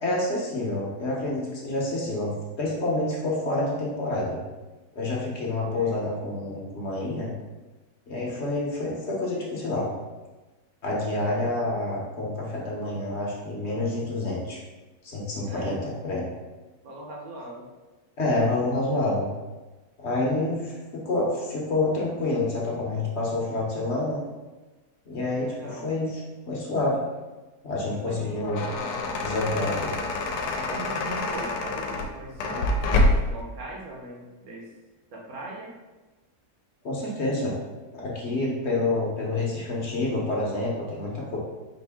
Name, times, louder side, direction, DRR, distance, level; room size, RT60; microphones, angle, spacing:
voice 1, 0.0-4.4 4.9-7.3 8.1-9.9 10.8-14.6 15.0-16.3 18.2-19.3 20.0-24.2 25.1-26.1 26.5-27.0 27.6-28.6 29.2-29.9 36.8-37.5 37.9-41.4, left 2 dB, 55° left, -3 dB, 0.9 m, -28 dB
voice 2, 5.7-6.0 15.4-15.8 16.8-17.7 25.4-25.8 28.0-28.4 30.7-34.7 35.1-35.7, right 2 dB, 65° right, -2 dB, 1.3 m, -40 dB
sound 1, 28.2-33.4, left 2 dB, 80° left, 1.1 m, -26 dB
4.4 x 2.6 x 3.4 m, 1.2 s
omnidirectional pair, 1.7 m